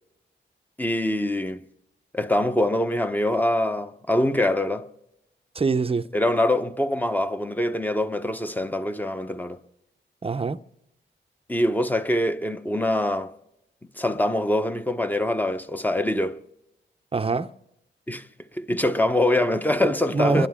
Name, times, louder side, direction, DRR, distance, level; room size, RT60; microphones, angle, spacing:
voice 1, 0.8-1.6 2.1-4.9 6.1-9.6 11.5-13.3 14.0-16.4 18.1-18.3 18.5-20.5, left 1 dB, 10° left, 0.9 m, -24 dB
voice 2, 5.5-6.1 10.2-10.6 17.1-17.5 19.8-20.5, right 4 dB, 30° right, 0.7 m, -24 dB
29.5 x 11.5 x 3.7 m
cardioid pair, 60°, 20 cm